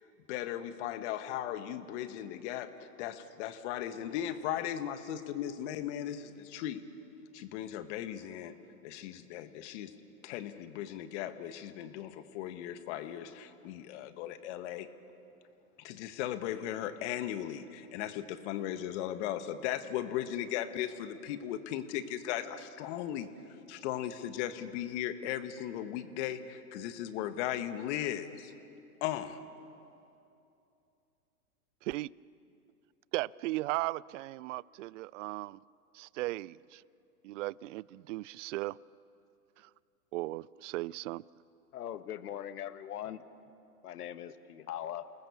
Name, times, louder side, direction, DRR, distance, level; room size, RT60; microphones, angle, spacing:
voice 1, 0.3-6.8 7.3-8.5 8.8-9.9 10.2-14.9 15.8-23.3 23.7-28.5 29.0-29.4, left 11 dB, 50° left, 10 dB, 1.6 m, -37 dB
voice 2, 33.1-35.6 35.9-36.8 37.2-38.8 39.6-39.7 40.1-41.2, right 18 dB, 55° right, 24 dB, 0.5 m, -36 dB
voice 3, 41.7-43.2 43.8-45.1, left 11 dB, 80° left, 12 dB, 1.2 m, -40 dB
28.5 x 19.5 x 7.1 m, 2.7 s
hypercardioid pair, 120°, 46 cm